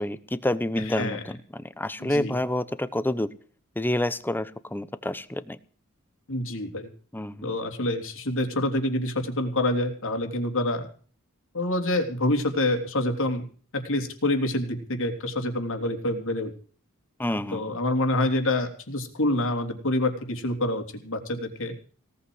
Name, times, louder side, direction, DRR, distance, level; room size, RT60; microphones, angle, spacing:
voice 1, 0.0-3.3 3.8-5.6 7.1-7.5 17.2-17.7, left 1 dB, 10° left, 15 dB, 0.9 m, -28 dB
voice 2, 0.9-1.2 2.0-2.4 6.3-6.9 7.4-10.9 11.5-13.4 13.7-16.5 17.5-21.7, left 1 dB, 65° left, 5 dB, 3.5 m, -27 dB
18.0 x 8.5 x 7.9 m, 0.42 s
head